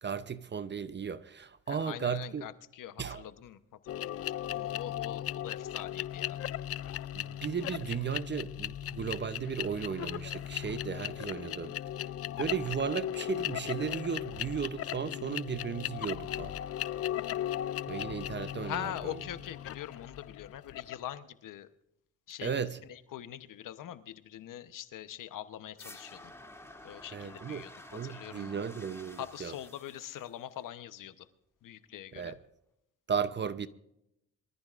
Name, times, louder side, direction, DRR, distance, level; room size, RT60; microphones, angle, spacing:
voice 1, 0.0-2.5 3.0-3.2 7.1-11.7 12.4-16.5 17.9-18.9 22.4-22.8 27.1-27.6 27.9-29.5 32.2-32.4 33.1-33.7, right 7 dB, 35° right, 0.7 m, -35 dB
voice 2, 1.7-6.4 18.6-21.7 22.3-22.6 22.9-26.3 26.8-27.7 28.0-28.6 29.2-31.3 31.6-32.4, left 12 dB, 85° left, 1.0 m, -43 dB
sound 1, 3.9-21.1, left 11 dB, 50° left, 0.4 m, -37 dB
sound 2, 25.8-30.8, left 1 dB, 10° left, 2.6 m, -51 dB
24.5 x 14.0 x 2.5 m
cardioid pair, 90°, 31 cm